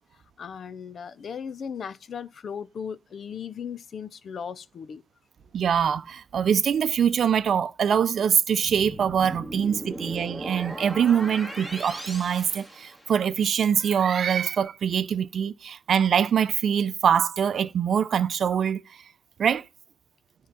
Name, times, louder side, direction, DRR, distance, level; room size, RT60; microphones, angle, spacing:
voice 1, 0.4-5.0, left 7 dB, 50° left, 0.6 m, -37 dB
voice 2, 5.5-18.8 19.4-19.7, right 8 dB, 55° right, 0.6 m, -24 dB
sound 1, 8.6-13.4, right 1 dB, 5° left, 2.2 m, -38 dB
10.0 x 3.8 x 7.0 m
cardioid pair, 90°, 0 cm